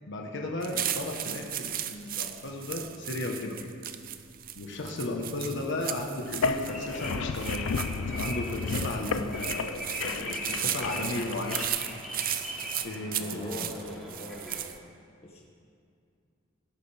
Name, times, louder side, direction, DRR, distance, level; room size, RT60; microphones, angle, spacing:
voice 1, 0.1-3.7 4.5-11.6 12.8-13.6, left 2 dB, 65° left, 2 dB, 1.2 m, -35 dB
sound 1, 0.6-14.8, right 11 dB, 45° right, 0.6 m, -36 dB
sound 2, 6.3-11.7, left 5 dB, 85° left, 0.5 m, -33 dB
sound 3, 6.7-14.7, equal, ahead, 3.2 m, -41 dB
voice 2, 13.2-14.7 15.2-15.4, left 1 dB, 30° left, -3 dB, 1.8 m, -42 dB
17.0 x 12.5 x 3.5 m, 2.3 s
head